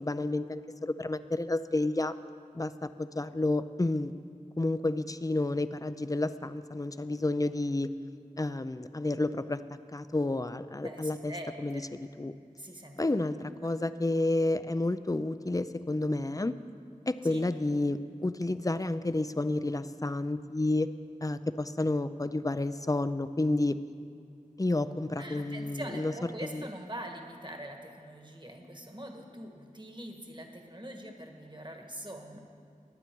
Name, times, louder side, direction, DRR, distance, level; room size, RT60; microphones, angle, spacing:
voice 1, 0.0-2.1 2.5-4.1 4.6-7.9 8.4-11.3 11.6-11.8 12.2-12.3 13.0-16.5 17.1-20.9 21.2-23.8 24.6-26.1 26.4-26.6, left 2 dB, 25° left, 13 dB, 0.5 m, -30 dB
voice 2, 10.8-11.9 12.6-13.1 13.6-13.7 17.2-17.4 25.2-32.4, right 1 dB, 35° right, 3 dB, 1.6 m, -43 dB
22.0 x 8.4 x 4.6 m, 2.3 s
wide cardioid pair, 45°, 14 cm